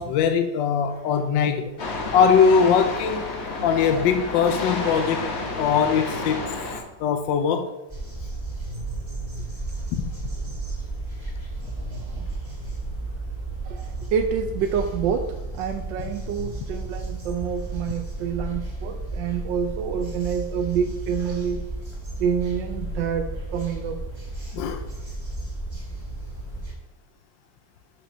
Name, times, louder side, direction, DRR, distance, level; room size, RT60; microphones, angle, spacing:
voice 1, 0.0-1.7 2.1-3.3 3.6-5.2 5.6-6.5 7.0-7.7 9.9-10.0 24.5-24.8, left 6 dB, 80° left, 1.3 m, -21 dB
sound 1, 1.8-6.8, left 2 dB, 40° left, 1.3 m, -30 dB
sound 2, 7.9-26.7, right 2 dB, 15° right, 2.4 m, -33 dB
voice 2, 11.9-12.3 13.6-21.6 22.2-24.0, right 7 dB, 75° right, 1.3 m, -27 dB
7.0 x 5.8 x 5.4 m
omnidirectional pair, 2.0 m